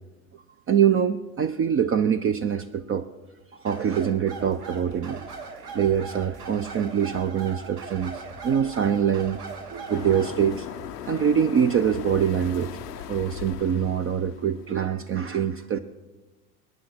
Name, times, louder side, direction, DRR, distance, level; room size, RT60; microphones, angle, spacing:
voice 1, 0.7-3.1 3.6-5.3 5.7-9.4 9.7-10.7 11.1-12.7 13.1-15.8, right 8 dB, 30° right, 10 dB, 0.6 m, -24 dB
sound 1, 3.6-10.4, right 4 dB, 80° right, 3.1 m, -39 dB
sound 2, 4.3-13.4, right 4 dB, 60° right, 2.2 m, -48 dB
sound 3, 9.9-14.8, left 12 dB, 90° left, 0.7 m, -38 dB
21.0 x 9.6 x 6.1 m, 1.2 s
hypercardioid pair, 90°, 46 cm